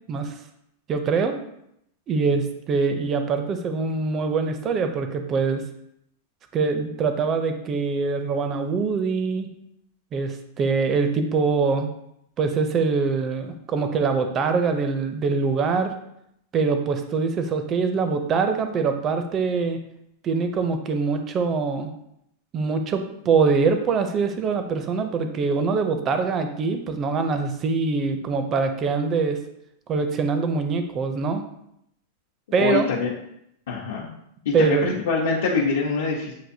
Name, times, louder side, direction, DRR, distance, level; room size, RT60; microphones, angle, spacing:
voice 1, 0.9-1.4 2.1-5.6 6.5-9.5 10.1-11.9 12.4-15.9 16.5-19.8 20.2-21.9 22.5-29.4 29.9-31.4 32.5-32.9 34.5-34.9, right 4 dB, 20° right, 7 dB, 0.4 m, -23 dB
voice 2, 32.5-33.1 33.7-34.1 34.4-36.3, left 4 dB, 75° left, -3 dB, 0.8 m, -24 dB
7.5 x 2.6 x 2.7 m, 0.76 s
supercardioid pair, 175°, 0 cm